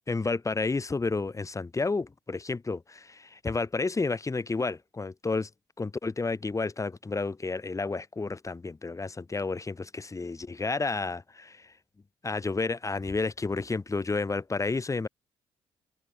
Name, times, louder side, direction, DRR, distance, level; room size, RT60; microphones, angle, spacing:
voice 1, 0.1-5.5 5.8-11.7 12.2-15.1, left 3 dB, 25° left, 5.6 m, -31 dB
open air
figure-of-eight pair, 45°, 13 cm